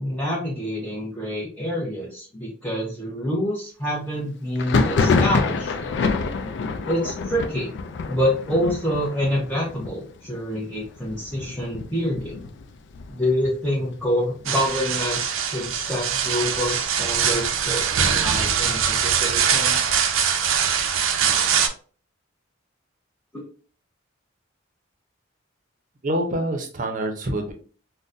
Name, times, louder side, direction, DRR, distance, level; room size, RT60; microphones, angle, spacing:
voice 1, 0.0-6.0 6.8-7.7 8.1-12.3 13.1-19.8, equal, 10° left, -7 dB, 0.7 m, -27 dB
Thunder, 4.6-14.1 14.3-15.0 15.3-16.3 16.7-18.4, left 4 dB, 60° left, 0.3 m, -27 dB
sound 1, 14.5-21.7, right 7 dB, 80° right, 0.4 m, -22 dB
voice 2, 26.0-27.5, right 1 dB, 40° right, 4 dB, 0.6 m, -26 dB
3.9 x 2.1 x 2.5 m, 0.40 s
head